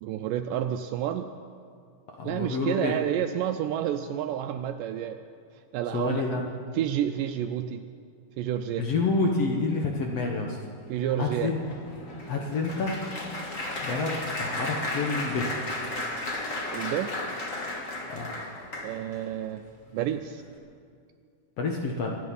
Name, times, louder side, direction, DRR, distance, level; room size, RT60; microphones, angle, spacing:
voice 1, 0.0-1.3 2.2-5.2 5.7-6.4 6.7-7.8 8.4-8.9 10.9-11.5 16.7-17.1 18.8-19.6 19.9-20.4, right 10 dB, 80° right, 7 dB, 2.1 m, -29 dB
voice 2, 2.2-3.0 5.9-6.4 8.8-10.6 11.0-11.6 12.3-13.0 13.8-15.5 18.1-18.3 21.6-22.2, left 3 dB, 65° left, 1 dB, 1.7 m, -28 dB
Applause, 10.9-19.2 19.9-20.1 20.4-20.6, left 2 dB, 35° left, 1.3 m, -34 dB
24.5 x 9.2 x 5.5 m, 2.3 s
omnidirectional pair, 4.0 m